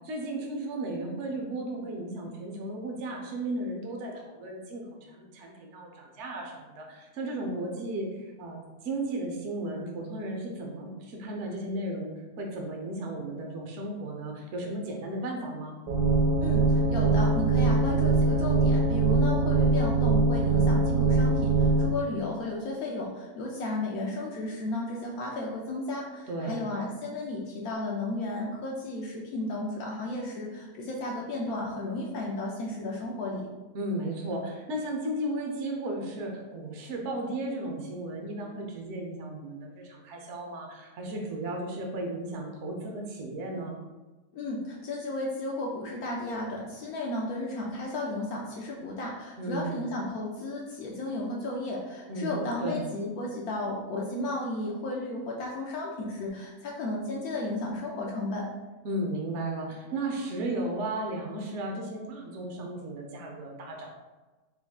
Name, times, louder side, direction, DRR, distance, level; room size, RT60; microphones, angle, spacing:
voice 1, 0.0-15.7 26.3-26.7 33.7-43.7 49.4-49.8 52.1-52.8 58.8-64.0, right 1 dB, 60° right, 1 dB, 0.8 m, -35 dB
sound 1, 15.9-21.9, right 3 dB, 85° right, 1.2 m, -23 dB
voice 2, 16.4-33.5 44.3-58.5, left 2 dB, 70° left, -2 dB, 1.0 m, -34 dB
4.4 x 3.6 x 2.3 m, 1.2 s
omnidirectional pair, 1.7 m